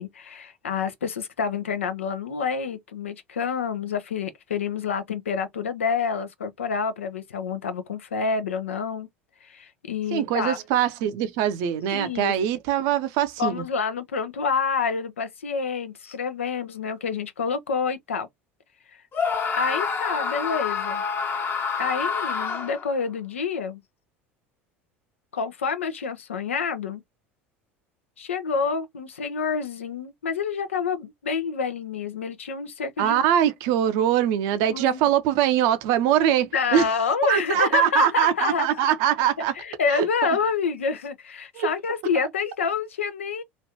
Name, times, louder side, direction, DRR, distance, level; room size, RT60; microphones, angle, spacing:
voice 1, 0.0-9.1 9.4-10.6 11.9-12.3 13.4-18.3 18.9-19.0 19.6-21.0 21.8-23.8 25.3-27.0 28.2-33.3 34.7-35.0 36.4-38.7 39.6-43.4, left 5 dB, 85° left, 0.6 m, -28 dB
voice 2, 10.1-13.6 33.0-36.9 37.3-39.5 39.9-40.0 41.5-41.7, right 10 dB, 60° right, 0.6 m, -22 dB
Screaming, 19.1-22.9, left 5 dB, 30° left, 0.9 m, -27 dB
3.1 x 2.5 x 2.8 m
hypercardioid pair, 70°, 7 cm